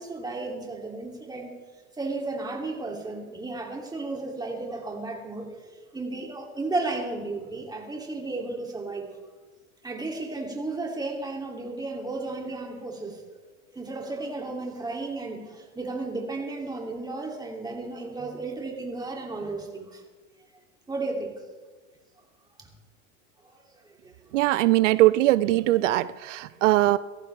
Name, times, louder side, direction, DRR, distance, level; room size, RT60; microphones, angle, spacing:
voice 1, 0.0-1.5 2.0-9.1 9.8-13.2 13.7-20.0 20.9-21.4 22.6-22.7 24.0-24.1, right 3 dB, 10° right, 0 dB, 2.8 m, -33 dB
voice 2, 24.3-27.0, right 17 dB, 85° right, 16 dB, 0.5 m, -21 dB
18.0 x 14.0 x 3.4 m, 1.4 s
supercardioid pair, 115°, 36 cm